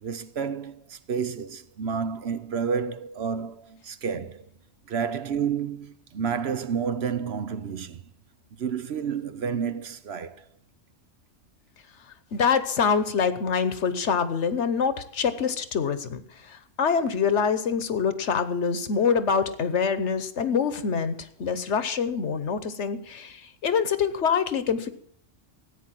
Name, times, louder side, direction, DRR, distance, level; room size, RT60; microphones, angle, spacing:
voice 1, 0.0-4.4 4.9-8.0 8.6-10.4, right 6 dB, 60° right, 1.1 m, -30 dB
voice 2, 12.3-16.2 16.5-24.9, left 6 dB, 70° left, 1.3 m, -25 dB
14.5 x 9.1 x 7.6 m
omnidirectional pair, 1.2 m